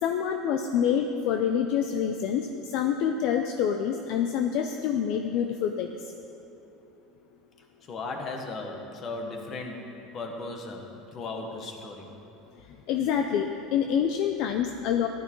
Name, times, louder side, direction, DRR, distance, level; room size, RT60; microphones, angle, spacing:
voice 1, 0.0-5.9 12.9-15.1, left 8 dB, 50° left, 5 dB, 0.6 m, -26 dB
voice 2, 7.8-12.1, left 3 dB, 30° left, 3 dB, 1.5 m, -37 dB
14.5 x 12.0 x 4.7 m, 2.9 s
cardioid pair, 170°, 0 cm